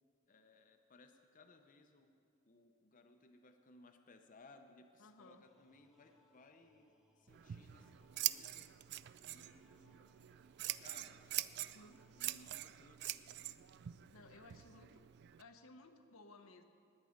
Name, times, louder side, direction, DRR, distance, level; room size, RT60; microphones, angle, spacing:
voice 1, 0.3-2.2 2.5-8.7 9.2-10.4 10.8-11.2 11.6-13.4, left 2 dB, 40° left, 5 dB, 0.6 m, -63 dB
voice 2, 5.0-5.4 11.7-12.0 14.1-15.0 15.3-16.6, left 2 dB, 85° left, 6 dB, 0.9 m, -59 dB
sound 1, 5.5-12.8, left 1 dB, ahead, 1.2 m, -75 dB
Scissors, 7.3-15.4, right 15 dB, 55° right, 0.3 m, -44 dB
20.0 x 8.2 x 5.1 m, 2.5 s
head